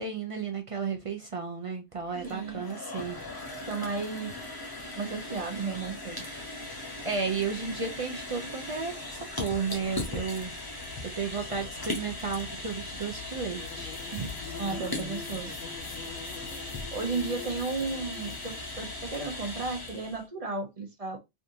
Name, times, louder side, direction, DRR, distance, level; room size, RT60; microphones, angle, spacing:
voice 1, 0.0-3.2 3.5-3.7 7.0-10.8 11.2-14.3 16.4-16.6, right 5 dB, 60° right, 0.3 m, -33 dB
sound 1, 2.0-20.2, left 2 dB, 25° left, 0.7 m, -39 dB
voice 2, 2.2-2.7 3.6-4.4 4.9-6.2 14.6-15.6 16.9-21.2, right 4 dB, 40° right, 0.7 m, -34 dB
sound 2, 13.6-18.7, left 7 dB, 70° left, 0.7 m, -44 dB
3.5 x 2.5 x 2.7 m
omnidirectional pair, 1.1 m